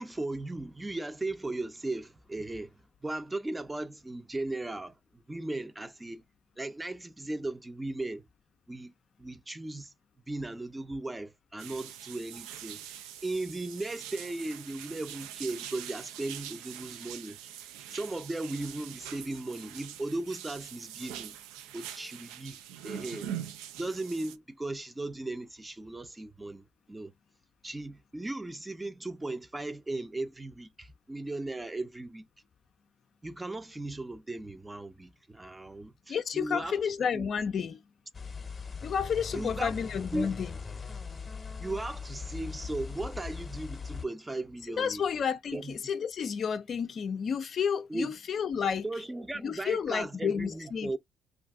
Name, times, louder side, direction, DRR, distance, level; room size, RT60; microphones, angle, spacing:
voice 1, 0.0-6.2 6.6-8.3 8.7-8.9 9.2-9.9 10.3-17.4 17.9-21.4 21.7-23.3 23.8-27.1 27.6-32.3 33.2-36.8 37.1-37.3 37.6-37.7 39.3-39.8 40.1-40.4 41.6-45.0 45.5-45.8 47.9-48.1 48.8-51.0, right 2 dB, 15° right, 0.5 m, -37 dB
sound 1, 11.6-24.4, right 10 dB, 85° right, 0.3 m, -43 dB
voice 2, 36.1-37.8 38.8-40.5 44.8-48.9 49.4-50.9, left 7 dB, 55° left, 0.4 m, -31 dB
sound 2, 38.1-44.1, left 5 dB, 35° left, 0.8 m, -40 dB
2.5 x 2.4 x 3.5 m
hypercardioid pair, 55°, 0 cm